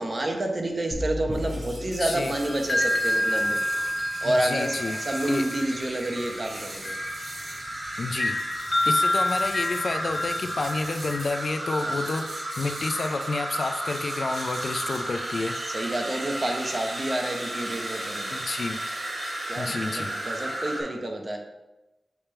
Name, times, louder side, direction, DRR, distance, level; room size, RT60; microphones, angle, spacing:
voice 1, 0.0-3.6 4.2-6.9 11.8-12.0 15.6-18.4 19.5-21.4, right 1 dB, 30° right, 3 dB, 0.9 m, -29 dB
sound 1, 0.9-3.0, left 1 dB, 5° right, 1.5 m, -35 dB
sound 2, 1.3-20.8, right 1 dB, 55° right, 2.2 m, -34 dB
voice 2, 2.0-2.3 4.2-5.0 5.3-5.5 8.0-8.4 8.8-15.6 18.3-18.8 19.6-20.1, left 3 dB, 55° left, 7 dB, 0.4 m, -30 dB
sound 3, 2.3-11.3, left 1 dB, 30° left, 0.8 m, -29 dB
7.1 x 3.5 x 4.4 m, 1.0 s
wide cardioid pair, 115°, 0 cm